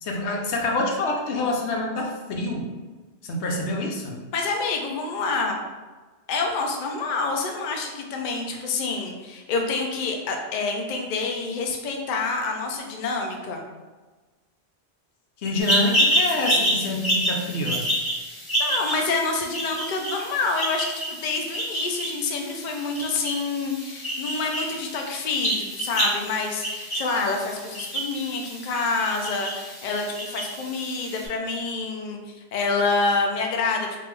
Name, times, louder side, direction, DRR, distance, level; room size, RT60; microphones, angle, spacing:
voice 1, 0.0-2.7 3.2-4.2 15.4-17.9, left 2 dB, 85° left, 0 dB, 0.9 m, -26 dB
voice 2, 4.3-5.6 6.3-13.6 18.2-33.9, left 3 dB, 55° left, 2 dB, 0.6 m, -27 dB
sound 1, 15.6-31.3, equal, 30° left, 1.0 m, -28 dB
3.6 x 2.4 x 3.2 m, 1.3 s
omnidirectional pair, 1.1 m